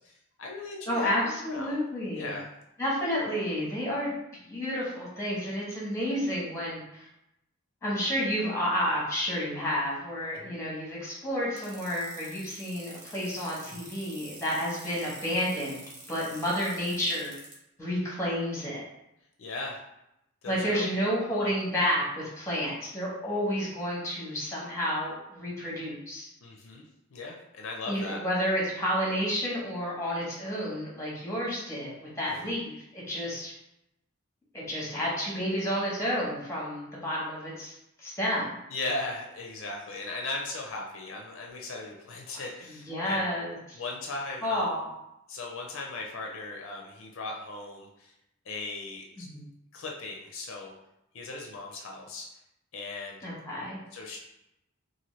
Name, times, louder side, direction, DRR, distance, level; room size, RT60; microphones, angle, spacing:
voice 1, 0.0-1.8 2.1-2.5 10.3-10.6 19.4-19.8 20.4-21.0 21.3-21.5 26.4-26.8 27.1-28.2 32.2-32.6 38.7-43.3 43.7-44.7 45.3-48.1 48.5-49.3 49.7-50.7 51.1-52.3 52.7-53.2 53.9-54.2, left 3 dB, 60° left, 0 dB, 0.4 m, -38 dB
voice 2, 0.9-2.3 2.8-4.1 4.4-7.1 7.8-15.8 16.1-17.3 17.8-18.8 20.5-26.3 27.9-33.5 34.5-37.7 38.0-38.6 42.9-43.8 44.4-44.9 49.2-49.4 53.2-53.8, equal, 10° left, -5 dB, 0.8 m, -30 dB
sound 1, 11.6-17.5, right 2 dB, 35° right, 0.7 m, -47 dB
2.8 x 2.5 x 3.0 m, 0.86 s
head